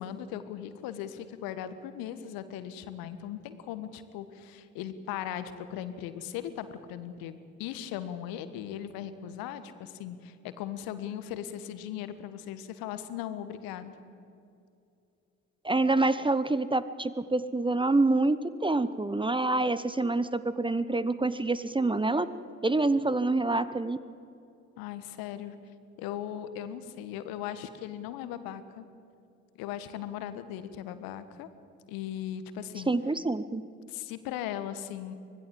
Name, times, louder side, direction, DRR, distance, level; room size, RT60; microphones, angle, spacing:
voice 1, 0.0-13.9 24.8-25.6 26.0-28.9 29.6-31.5 31.9-32.9 33.9-35.1, left 10 dB, 65° left, 12 dB, 1.4 m, -38 dB
voice 2, 15.6-22.3 22.6-24.0 32.9-33.6, right 2 dB, 15° right, 15 dB, 0.9 m, -26 dB
25.0 x 18.5 x 7.6 m, 2.6 s
figure-of-eight pair, 45°, 39 cm